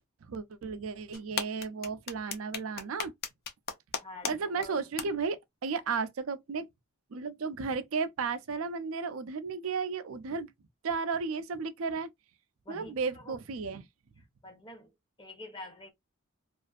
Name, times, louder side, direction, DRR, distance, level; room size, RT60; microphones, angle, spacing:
voice 1, 0.3-3.1 4.2-6.7 7.1-10.5 10.8-12.1 12.7-13.9, right 5 dB, 70° right, 0.4 m, -34 dB
sound 1, 1.1-4.3 4.6-4.7 5.0-5.1, left 6 dB, 45° left, 0.5 m, -34 dB
voice 2, 4.0-4.9 12.6-13.4 14.2-14.9 15.2-15.9, left 1 dB, 25° left, 0.9 m, -47 dB
2.5 x 2.4 x 2.3 m
head